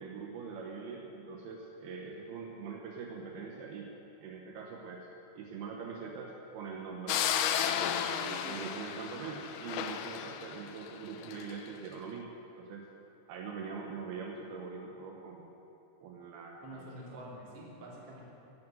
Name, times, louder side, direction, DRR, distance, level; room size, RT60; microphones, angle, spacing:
voice 1, 0.0-3.9 4.2-5.1 5.4-7.2 7.8-12.9 13.3-15.5 16.0-16.9, right 5 dB, 75° right, 0 dB, 3.0 m, -43 dB
sound 1, 7.1-11.6, left 9 dB, 80° left, 2.7 m, -33 dB
voice 2, 16.6-18.2, right 1 dB, 40° right, -5 dB, 3.8 m, -47 dB
16.0 x 11.0 x 7.6 m, 2.9 s
omnidirectional pair, 4.5 m